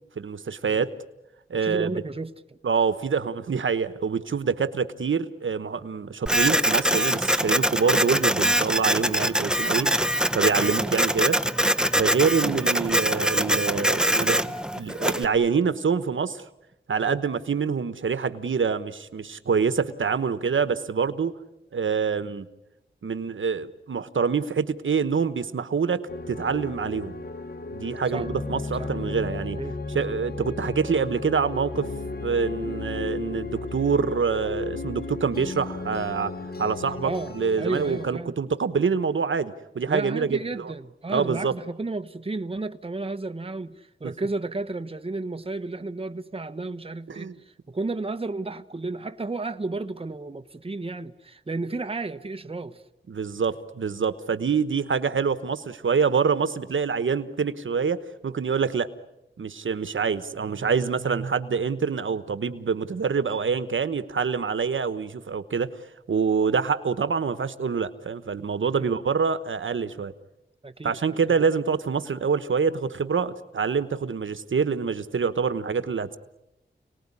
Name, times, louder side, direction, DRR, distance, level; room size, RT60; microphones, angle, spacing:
voice 1, 0.2-0.9 1.5-1.9 2.6-9.9 10.3-11.4 11.9-16.4 16.9-21.4 21.7-22.5 23.0-27.1 27.7-29.6 29.9-31.9 32.2-36.3 36.6-40.7 41.1-41.5 47.2-47.3 53.1-58.9 59.4-65.7 66.1-70.1 70.8-76.2, right 5 dB, 80° right, 12 dB, 1.2 m, -26 dB
voice 2, 1.6-2.6 7.6-7.8 9.8-10.0 10.6-10.7 17.0-17.2 28.1-28.3 28.8-28.9 29.6-29.8 30.1-30.2 37.0-38.4 39.9-52.8 68.7-68.9 70.6-71.0, right 3 dB, 30° right, 9 dB, 1.2 m, -33 dB
Printer, 6.3-15.2, equal, 5° right, 1.0 m, -23 dB
sound 1, 26.1-38.1, left 3 dB, 50° left, 1.6 m, -34 dB
29.5 x 19.5 x 9.9 m, 0.94 s
wide cardioid pair, 80°, 20 cm